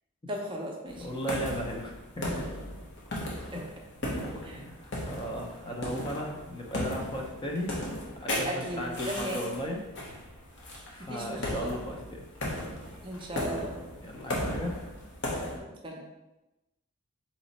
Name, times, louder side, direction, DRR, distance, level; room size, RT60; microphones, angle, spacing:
voice 1, 0.3-1.1 3.5-3.6 4.4-4.6 8.4-9.4 11.0-11.7 13.0-13.8 15.6-16.0, right 1 dB, 25° right, 0 dB, 0.6 m, -37 dB
sound 1, 0.9-15.6, left 1 dB, 55° left, 1.0 m, -36 dB
voice 2, 1.0-2.5 3.3-3.6 4.6-7.8 8.2-9.8 10.9-12.2 14.0-14.7, equal, 20° left, -1 dB, 0.6 m, -36 dB
4.1 x 3.1 x 4.1 m, 1.0 s
head